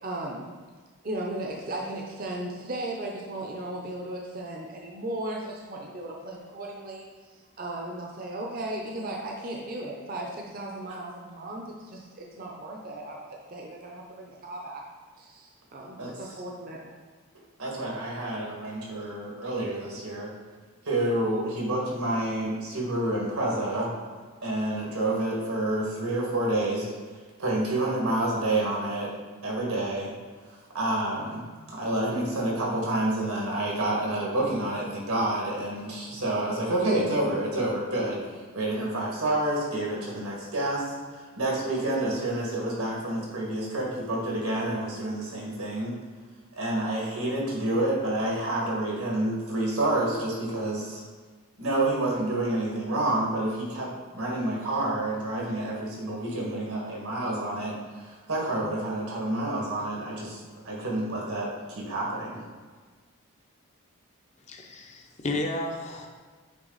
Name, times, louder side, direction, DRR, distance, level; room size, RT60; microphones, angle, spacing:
voice 1, 0.0-0.4 1.0-13.2 13.5-14.8 15.2-17.0, right 1 dB, 40° right, -1 dB, 0.6 m, -36 dB
voice 2, 17.6-20.3 20.8-23.9 24.4-26.9 27.4-29.1 29.4-30.1 30.4-31.4 31.7-46.0 46.5-51.0 51.6-60.4 60.6-62.4, right 1 dB, 90° right, -3 dB, 1.9 m, -28 dB
voice 3, 64.5-66.1, left 1 dB, 30° left, 2 dB, 0.6 m, -32 dB
8.2 x 3.4 x 4.0 m, 1.5 s
head